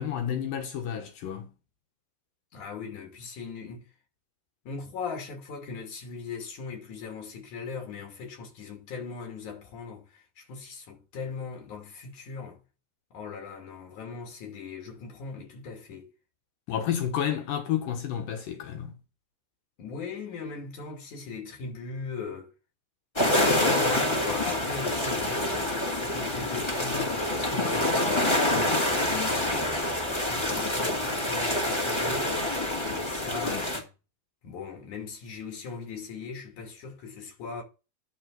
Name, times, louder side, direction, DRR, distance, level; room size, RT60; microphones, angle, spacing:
voice 1, 0.0-1.5 16.7-18.9 33.4-33.7, left 9 dB, 80° left, 2.8 m, -31 dB
voice 2, 2.5-3.9 4.7-12.6 13.1-16.1 19.8-22.5 23.6-32.3 32.9-33.9 34.4-37.6, left 5 dB, 60° left, 4.0 m, -39 dB
sound 1, 23.2-33.8, left 1 dB, 15° left, 0.9 m, -27 dB
11.5 x 3.8 x 7.5 m
omnidirectional pair, 4.0 m